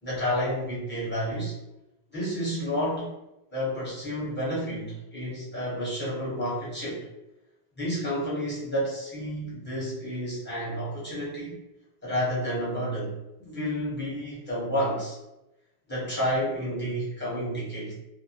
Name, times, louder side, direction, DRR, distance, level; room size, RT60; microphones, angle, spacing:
voice 1, 0.0-1.5 2.1-3.1 3.5-7.1 7.8-11.6 12.0-15.2 15.9-17.9, equal, 10° left, -9 dB, 1.0 m, -30 dB
2.2 x 2.1 x 2.8 m, 0.93 s
omnidirectional pair, 1.1 m